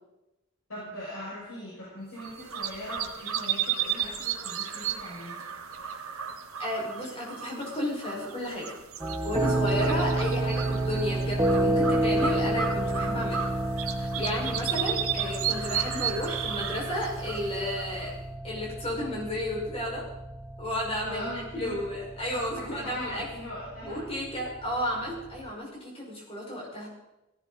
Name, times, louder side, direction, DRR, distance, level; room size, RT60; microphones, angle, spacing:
voice 1, 0.7-5.4 9.6-9.7 21.0-21.8 22.3-24.0, left 1 dB, 65° left, -7 dB, 6.9 m, -40 dB
sound 1, 2.2-18.2, right 8 dB, 75° right, 1.7 m, -34 dB
voice 2, 6.6-8.7 9.2-13.5 14.0-18.1 18.4-20.0 20.6-21.2 21.5-23.3 23.9-26.9, left 1 dB, 25° left, -3 dB, 5.7 m, -33 dB
sound 2, 9.0-25.5, right 1 dB, 15° right, 1.0 m, -30 dB
18.0 x 16.0 x 4.2 m, 0.96 s
head